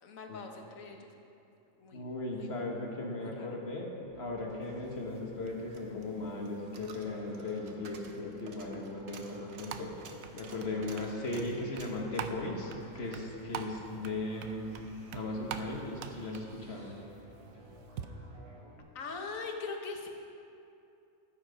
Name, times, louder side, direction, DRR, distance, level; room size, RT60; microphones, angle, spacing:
voice 1, 0.0-1.1 1.8-2.0 2.3-2.5 3.2-3.5 18.9-20.1, left 4 dB, 80° left, 3 dB, 1.5 m, -41 dB
voice 2, 1.9-3.9 4.2-9.9 10.3-14.7 15.1-16.9, left 2 dB, 50° left, 0 dB, 1.6 m, -37 dB
sound 1, 4.0-18.8, equal, 45° right, 2.1 m, -55 dB
Coin (dropping), 5.5-13.7 14.0-14.1, right 4 dB, 60° right, 1.2 m, -54 dB
sound 2, 8.4-18.1, right 7 dB, 90° right, 1.1 m, -45 dB
14.0 x 7.6 x 5.1 m, 2.7 s
omnidirectional pair, 1.4 m